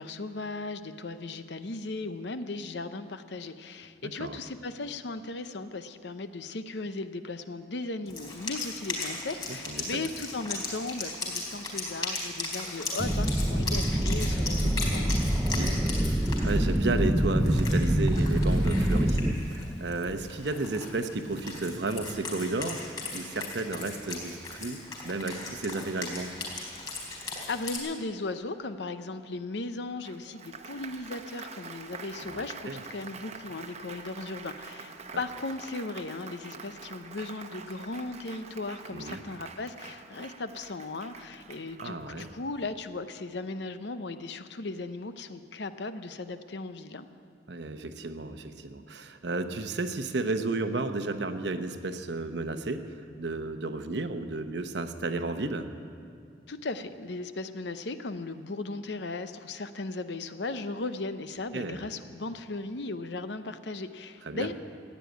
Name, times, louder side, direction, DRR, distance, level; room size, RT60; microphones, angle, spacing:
voice 1, 0.0-15.2 27.5-47.1 56.5-64.5, left 3 dB, 65° left, 10 dB, 0.7 m, -37 dB
Wind instrument woodwind instrument, 8.1-27.8, left 2 dB, 25° left, 4.2 m, -38 dB
voice 2, 9.7-10.1 15.4-22.8 23.1-26.3 32.2-32.8 38.9-39.2 41.8-42.3 47.5-55.7 61.5-61.8 64.2-64.5, right 2 dB, 65° right, 8 dB, 0.9 m, -33 dB
sound 1, 13.0-19.3, right 1 dB, 10° right, 0.6 m, -25 dB
Applause, 30.0-42.8, right 5 dB, 35° right, 0.9 m, -46 dB
15.0 x 9.2 x 9.3 m, 2.5 s
head